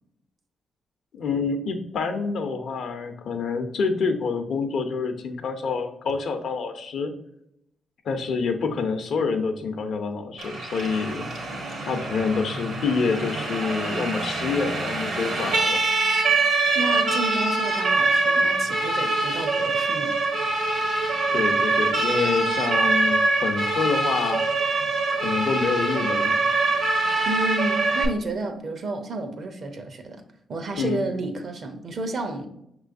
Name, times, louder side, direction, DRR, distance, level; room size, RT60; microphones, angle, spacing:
voice 1, 1.1-7.1 8.0-11.3 11.8-15.8 21.3-24.4 25.1-26.4 30.8-31.1, left 4 dB, 70° left, 0.6 m, -27 dB
Siren, 10.4-28.1, right 3 dB, 80° right, 1.3 m, -24 dB
voice 2, 16.7-20.2 27.2-30.2 30.5-32.5, right 2 dB, 60° right, 0.6 m, -31 dB
5.6 x 3.1 x 2.5 m
supercardioid pair, 55°, 0 cm